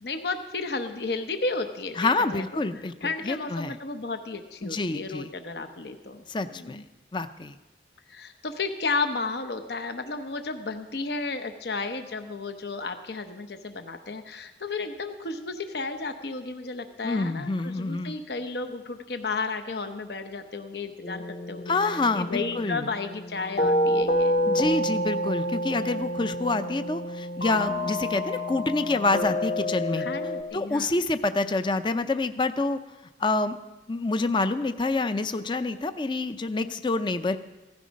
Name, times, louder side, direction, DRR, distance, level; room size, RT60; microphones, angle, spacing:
voice 1, 0.0-2.4 2.7-6.8 8.1-24.4 27.7-27.9 30.0-31.0 36.6-36.8, left 3 dB, 70° left, 7 dB, 0.9 m, -33 dB
voice 2, 2.0-3.7 4.6-5.3 6.3-6.8 7.1-7.5 17.0-18.2 21.7-22.9 24.5-30.1 30.5-32.8 33.2-33.6 33.9-37.4, left 3 dB, 25° left, 10 dB, 0.5 m, -27 dB
sound 1, 21.0-30.4, equal, 45° left, 1.1 m, -28 dB
16.5 x 14.0 x 5.2 m, 1.1 s
head